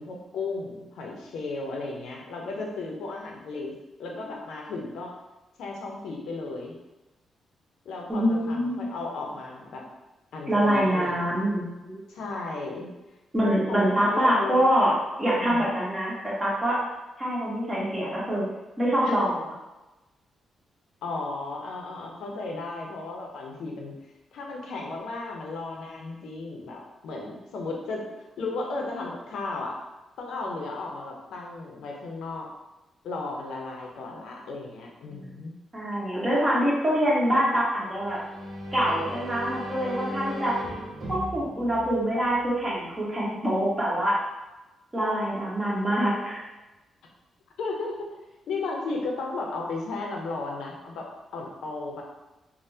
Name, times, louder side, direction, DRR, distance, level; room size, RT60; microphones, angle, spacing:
voice 1, 0.0-3.7 4.0-5.1 5.6-6.8 7.8-9.8 10.3-11.4 12.1-12.9 13.7-14.6 15.3-15.7 19.0-19.1 21.0-23.9 24.3-28.0 28.4-29.8 30.2-32.5 33.0-35.5 47.6-48.0 48.5-52.0, left 3 dB, 80° left, 0 dB, 0.5 m, -34 dB
voice 2, 8.1-8.9 10.5-12.0 13.3-14.9 15.2-16.8 17.2-18.5 18.8-19.4 35.1-35.3 35.7-38.2 38.7-40.5 41.1-44.2 44.9-46.4, equal, 20° right, -6 dB, 1.3 m, -25 dB
sound 1, 37.9-42.7, equal, 60° right, 0.6 m, -37 dB
3.3 x 2.1 x 2.7 m, 1.0 s
cardioid pair, 75°, 0 cm